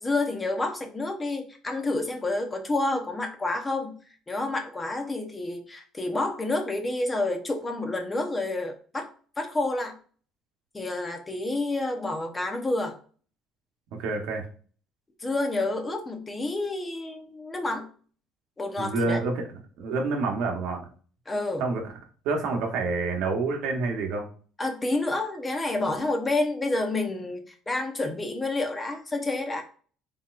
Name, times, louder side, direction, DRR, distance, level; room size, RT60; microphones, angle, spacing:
voice 1, 0.0-3.9 4.3-9.1 9.4-9.9 10.7-13.0 15.2-17.9 18.6-19.2 21.3-21.6 24.6-29.6, left 2 dB, 20° left, 5 dB, 0.8 m, -29 dB
voice 2, 14.0-14.5 18.8-19.4 19.8-20.9 21.6-21.9 22.2-24.3, right 3 dB, 80° right, 3 dB, 1.0 m, -28 dB
4.0 x 3.5 x 2.4 m, 0.42 s
cardioid pair, 105°, 0 cm